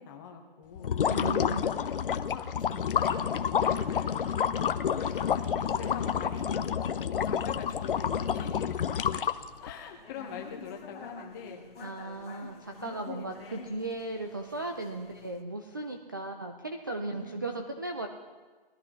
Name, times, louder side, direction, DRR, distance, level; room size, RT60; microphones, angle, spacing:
voice 1, 0.0-1.0 1.6-2.0 2.3-3.4 3.9-4.1 5.2-6.6 7.0-8.7 9.6-11.6 12.4-12.7 13.1-13.4 17.1-17.5, left 6 dB, 20° left, 2 dB, 1.2 m, -44 dB
sound 1, 0.8-9.7, left 8 dB, 65° left, 0.7 m, -29 dB
voice 2, 1.1-1.7 11.8-18.1, right 2 dB, 25° right, 4 dB, 0.4 m, -36 dB
sound 2, 3.1-15.4, left 5 dB, 85° left, 1.9 m, -47 dB
20.0 x 13.5 x 3.1 m, 1.4 s
hypercardioid pair, 170°, 29 cm